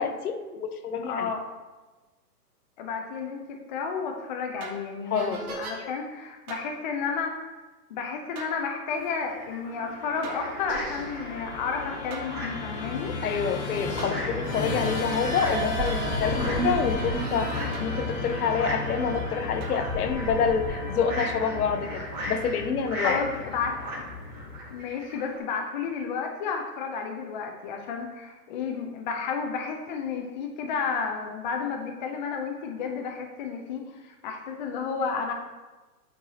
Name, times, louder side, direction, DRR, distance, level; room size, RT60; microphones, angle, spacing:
voice 1, 0.0-1.3 5.1-5.9 13.2-23.2, left 6 dB, 65° left, 7 dB, 0.8 m, -28 dB
voice 2, 1.1-1.4 2.8-7.5 7.9-13.2 22.9-24.0 24.7-35.3, left 5 dB, 30° left, 2 dB, 0.5 m, -32 dB
sound 1, 4.6-4.8 5.1-5.8 6.5-6.7 8.4-8.5 10.2-12.3 12.9-13.0 13.6-19.3 19.6-20.7, right 3 dB, 65° right, 1.6 m, -35 dB
sound 2, 8.9-25.4, equal, 35° right, 2.2 m, -39 dB
Musical instrument, 9.5-24.8, left 3 dB, 50° left, 1.2 m, -34 dB
8.9 x 4.6 x 2.9 m, 1.2 s
hypercardioid pair, 145°, 48 cm